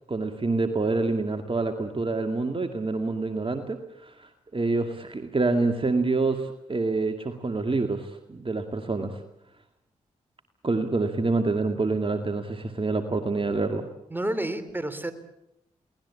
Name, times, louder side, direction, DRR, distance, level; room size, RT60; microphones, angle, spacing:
voice 1, 0.1-9.2 10.6-13.9, right 3 dB, 35° right, 6 dB, 2.2 m, -27 dB
voice 2, 14.1-15.1, right 1 dB, 15° right, 11 dB, 3.3 m, -29 dB
23.0 x 18.5 x 8.5 m, 0.81 s
supercardioid pair, 45°, 15 cm